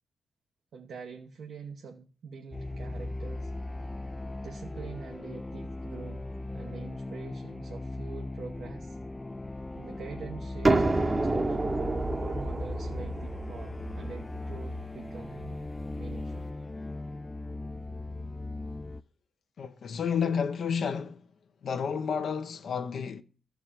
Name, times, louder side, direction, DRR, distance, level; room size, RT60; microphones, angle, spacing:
voice 1, 0.7-3.5 4.4-6.2 6.5-9.0 9.8-11.6 12.1-15.5 16.0-16.5, right 5 dB, 75° right, 1.1 m, -45 dB
sound 1, 2.5-19.0, left 2 dB, 20° left, 0.4 m, -38 dB
sound 2, 10.6-16.2, right 2 dB, 30° right, 1.0 m, -30 dB
voice 2, 19.6-21.2 21.6-23.2, left 6 dB, 70° left, 0.8 m, -30 dB
13.5 x 4.7 x 7.3 m
cardioid pair, 70°, 0 cm